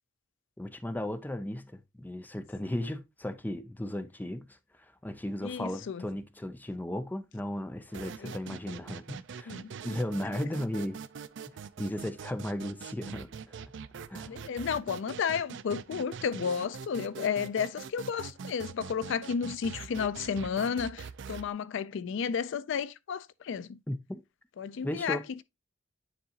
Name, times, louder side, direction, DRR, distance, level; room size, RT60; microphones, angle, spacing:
voice 1, 0.6-4.5 5.0-9.6 9.8-11.0 11.8-13.3 14.1-14.4 23.9-24.2 24.8-25.2, left 1 dB, 10° left, 0.5 m, -35 dB
voice 2, 5.4-6.1 8.2-8.3 9.5-9.7 14.3-23.8 24.6-25.4, left 6 dB, 70° left, 0.4 m, -32 dB
sound 1, 7.9-21.5, right 6 dB, 65° right, 0.4 m, -43 dB
9.5 x 3.8 x 2.8 m
head